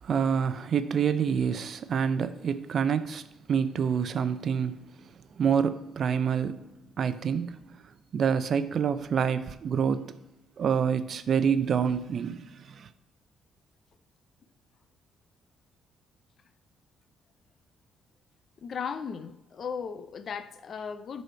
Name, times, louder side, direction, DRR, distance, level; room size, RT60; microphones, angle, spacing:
voice 1, 0.0-3.2 3.5-4.8 5.4-6.6 7.0-7.6 8.1-10.1 10.6-12.9, right 7 dB, 55° right, 0.6 m, -27 dB
voice 2, 18.6-21.2, left 6 dB, 55° left, 0.5 m, -36 dB
10.0 x 4.2 x 4.5 m
cardioid pair, 90°, 0 cm